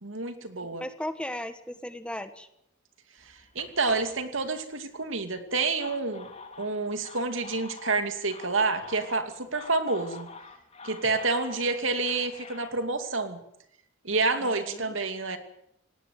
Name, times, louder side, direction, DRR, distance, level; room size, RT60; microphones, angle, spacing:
voice 1, 0.0-0.9 3.3-6.3 6.6-10.3 10.8-13.4 14.0-15.4, right 3 dB, 75° right, 8 dB, 2.6 m, -28 dB
voice 2, 0.8-2.5 14.4-14.9, left 1 dB, 5° left, 10 dB, 1.3 m, -36 dB
sound 1, 3.2-4.8 5.5-12.7, left 4 dB, 30° left, 3.0 m, -47 dB
18.5 x 18.0 x 9.4 m, 0.75 s
head